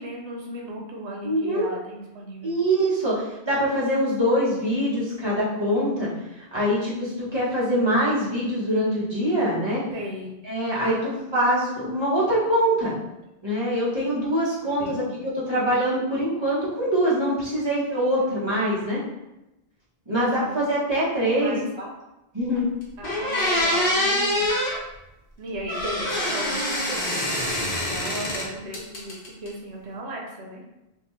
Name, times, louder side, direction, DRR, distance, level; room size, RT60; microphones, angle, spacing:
voice 1, 0.0-2.5 9.9-10.3 10.7-11.1 14.6-15.3 18.2-18.4 20.2-20.7 21.3-21.7 23.0-24.5 25.4-30.6, right 1 dB, 85° right, -1 dB, 1.0 m, -36 dB
voice 2, 1.2-1.6 2.4-6.1 6.5-9.8 10.4-12.9 13.4-19.0 20.1-21.6 22.3-22.7, equal, 25° right, -8 dB, 0.9 m, -24 dB
sound 1, 22.5-22.6 23.0-24.8 25.7-28.5 28.7-29.5, left 1 dB, 60° left, 0.9 m, -25 dB
2.7 x 2.2 x 3.0 m, 0.93 s
omnidirectional pair, 1.1 m